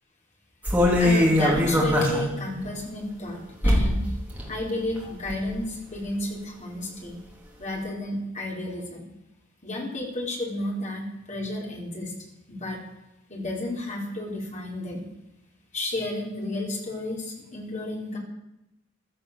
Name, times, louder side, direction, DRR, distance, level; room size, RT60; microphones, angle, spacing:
sound 1, 0.6-2.3 2.7-2.8 3.6-4.0 4.3-4.5 5.0-5.5 5.9-6.0, left 1 dB, 10° right, 3.7 m, -21 dB
voice 1, 1.0-4.1 4.5-7.2 7.6-9.0 9.6-12.1 12.5-12.8 13.3-15.1 15.7-18.2, left 1 dB, 35° left, -1 dB, 5.0 m, -32 dB
15.0 x 13.0 x 7.0 m, 0.90 s
head